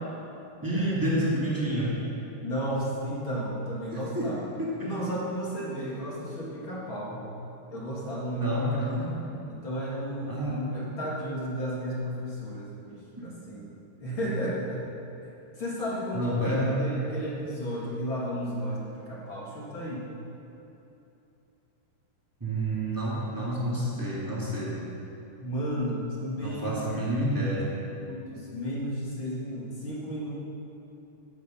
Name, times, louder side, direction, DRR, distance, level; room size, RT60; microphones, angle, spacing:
voice 1, 0.6-1.9 4.1-4.3 4.6-4.9 5.7-5.8 8.4-9.1 10.3-10.7 13.1-13.2 16.1-16.9 22.4-24.8 26.4-27.7, right 1 dB, 10° right, -8 dB, 1.3 m, -29 dB
voice 2, 2.4-4.5 4.8-7.3 7.7-9.0 9.5-13.7 14.0-14.9 15.6-20.1 25.4-26.8 27.3-27.6 28.0-30.4, equal, 40° left, -6 dB, 2.0 m, -33 dB
13.0 x 8.3 x 5.5 m, 2.9 s
omnidirectional pair, 4.8 m